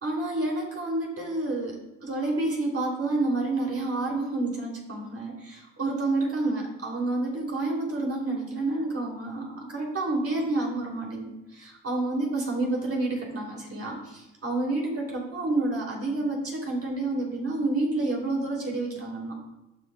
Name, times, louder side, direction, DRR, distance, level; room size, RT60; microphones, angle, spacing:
voice 1, 0.0-19.5, right 2 dB, 35° right, -1 dB, 3.0 m, -29 dB
11.5 x 7.2 x 2.3 m, 0.98 s
hypercardioid pair, 50°, 39 cm